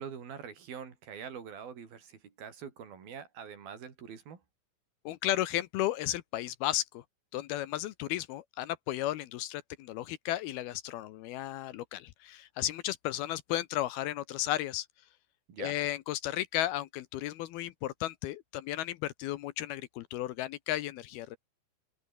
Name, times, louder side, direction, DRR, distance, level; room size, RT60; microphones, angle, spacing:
voice 1, 0.0-4.4 15.5-15.8, right 7 dB, 60° right, 5.6 m, -44 dB
voice 2, 5.1-7.0 7.3-14.9 15.6-21.4, left 14 dB, 75° left, 2.6 m, -34 dB
omnidirectional pair, 4.8 m